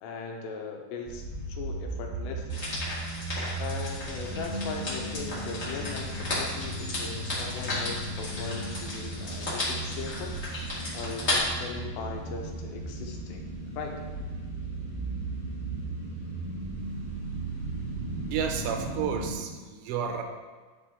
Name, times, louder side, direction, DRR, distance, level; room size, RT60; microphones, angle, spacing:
voice 1, 0.0-2.7 3.6-10.4 10.9-13.4 13.8-13.9, left 5 dB, 85° left, 2 dB, 2.9 m, -39 dB
sound 1, 1.0-19.3, right 2 dB, 25° left, 0.8 m, -36 dB
sound 2, 2.5-11.4, left 2 dB, 60° left, 0.7 m, -34 dB
voice 2, 18.3-20.2, right 7 dB, 85° right, 5 dB, 2.9 m, -31 dB
10.5 x 5.2 x 3.6 m, 1.3 s
omnidirectional pair, 5.1 m